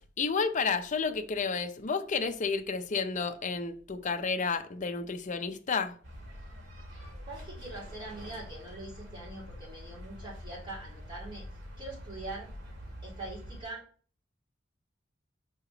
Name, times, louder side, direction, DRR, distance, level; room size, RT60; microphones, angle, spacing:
voice 1, 0.2-6.0, left 5 dB, 40° left, 0.5 m, -31 dB
sound 1, 6.0-13.6, equal, 65° right, 2.3 m, -46 dB
voice 2, 7.2-11.4 11.8-12.5 13.0-13.8, right 2 dB, 25° right, 3.2 m, -43 dB
4.8 x 3.5 x 5.5 m
head